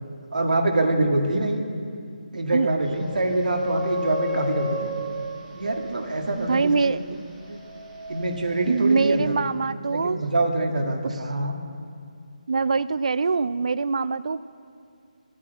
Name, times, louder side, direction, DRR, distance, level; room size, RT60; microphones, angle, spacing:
voice 1, 0.3-1.7 2.3-4.9 5.5-7.0 7.5-7.6 8.1-9.3 9.9-11.6, right 2 dB, 75° right, 3 dB, 1.7 m, -25 dB
sound 1, 2.8-9.3, left 1 dB, 15° right, 2.7 m, -34 dB
voice 2, 6.4-7.2 8.7-10.2 11.0-11.2 12.5-14.5, right 4 dB, 50° right, 16 dB, 0.3 m, -24 dB
14.0 x 8.5 x 7.9 m, 2.4 s
hypercardioid pair, 175°, 4 cm